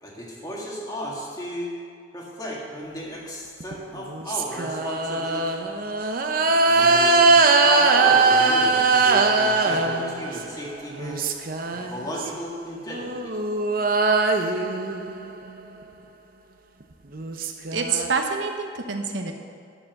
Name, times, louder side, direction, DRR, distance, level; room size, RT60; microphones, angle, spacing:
voice 1, 0.0-1.8 2.1-5.7 6.7-11.3 11.7-13.3, equal, 20° left, -4 dB, 2.0 m, -34 dB
sound 1, 3.6-10.6 10.9-12.3 12.9-15.5 16.8-16.9 17.1-18.1, right 3 dB, 50° right, 0.7 m, -21 dB
voice 2, 17.7-19.3, right 4 dB, 70° right, 4 dB, 1.0 m, -26 dB
10.0 x 7.1 x 6.5 m, 2.2 s
head